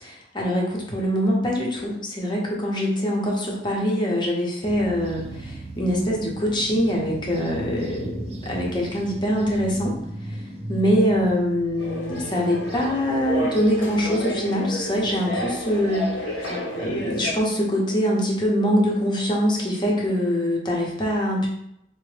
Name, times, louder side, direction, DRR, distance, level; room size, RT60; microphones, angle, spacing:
voice 1, 0.0-10.0 10.2-10.4 10.7-21.5, equal, 25° left, -2 dB, 0.7 m, -24 dB
sound 1, 4.6-16.6, right 1 dB, 35° right, 0.5 m, -38 dB
sound 2, 11.8-17.3, left 1 dB, 70° left, 0.6 m, -31 dB
3.9 x 2.1 x 3.2 m, 0.77 s
head